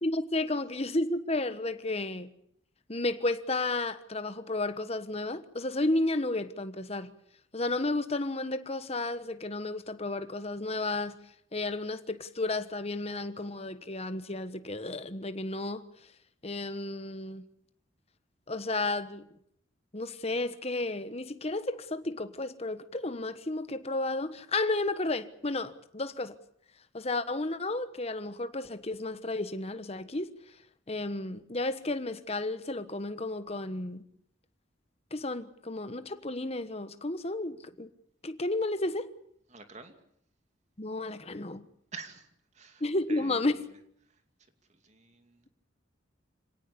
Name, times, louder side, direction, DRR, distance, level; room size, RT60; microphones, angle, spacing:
voice 1, 0.0-2.3 2.9-7.1 7.5-11.2 11.5-16.1 16.4-17.4 18.5-19.4 19.9-26.3 26.9-30.6 30.9-34.0 35.1-37.9 38.2-39.1 40.8-41.6 42.8-43.6, left 2 dB, 30° left, 1.3 m, -32 dB
voice 2, 39.5-39.9 41.9-42.3 42.5-42.8 43.1-43.7 44.8-45.4, right 4 dB, 35° right, 2.6 m, -46 dB
26.0 x 18.0 x 8.5 m
head